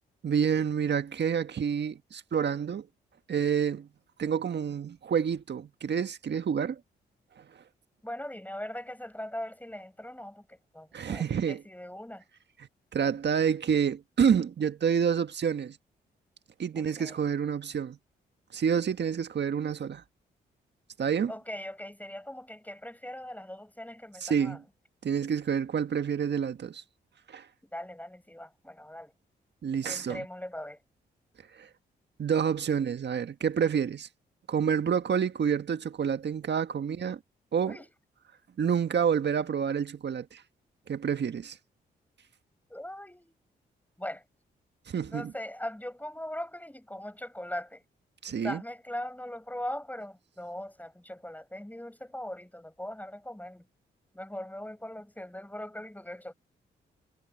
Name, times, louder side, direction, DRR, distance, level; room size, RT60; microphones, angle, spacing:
voice 1, 0.2-2.9 3.3-3.9 4.2-6.8 7.4-7.5 10.9-11.6 12.9-15.8 16.6-18.0 18.5-20.0 21.0-21.3 24.2-24.6 25.0-26.8 27.3-27.5 29.6-30.2 31.5-31.7 32.2-34.1 34.5-37.2 37.5-37.8 38.6-40.4 40.9-41.6 44.9-45.3 48.2-48.6, right 7 dB, 55° right, 1.7 m, -28 dB
voice 2, 8.0-12.2 16.8-17.3 21.3-24.6 27.7-29.1 29.8-30.8 37.6-37.9 42.7-43.3 44.0-44.2 45.1-47.8 48.3-53.7 54.1-56.3, left 1 dB, 10° left, 6.1 m, -40 dB
supercardioid pair, 45°, 21 cm